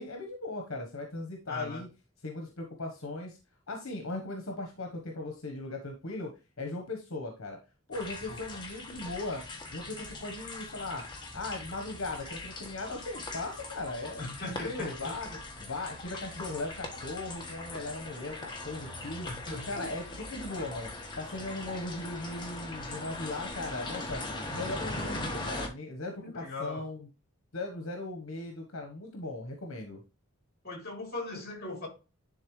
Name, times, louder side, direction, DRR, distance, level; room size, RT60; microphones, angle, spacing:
voice 1, 0.0-1.9 2.2-3.4 3.7-7.6 7.9-9.4 9.7-11.0 11.3-14.2 14.6-15.3 15.6-19.3 19.7-20.9 21.2-24.2 24.5-27.1 27.5-30.0, left 2 dB, 80° left, 1.2 m, -38 dB
voice 2, 1.5-1.8 8.3-8.6 14.2-15.4 19.3-19.9 26.2-26.9 30.6-31.9, left 2 dB, 45° left, 3.4 m, -39 dB
sound 1, 7.9-25.7, left 2 dB, 20° left, 1.3 m, -41 dB
10.5 x 3.8 x 3.2 m
head